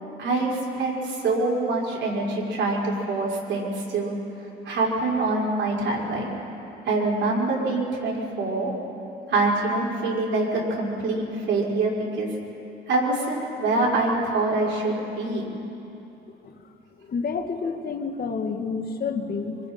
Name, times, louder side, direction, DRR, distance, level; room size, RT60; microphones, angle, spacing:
voice 1, 0.2-4.2 4.6-6.3 6.9-8.7 9.3-12.3 12.9-15.4, right 2 dB, 70° right, -4 dB, 5.2 m, -25 dB
voice 2, 17.1-19.6, left 5 dB, 50° left, 5 dB, 1.8 m, -29 dB
26.0 x 25.0 x 4.4 m, 2.9 s
cardioid pair, 90°, 20 cm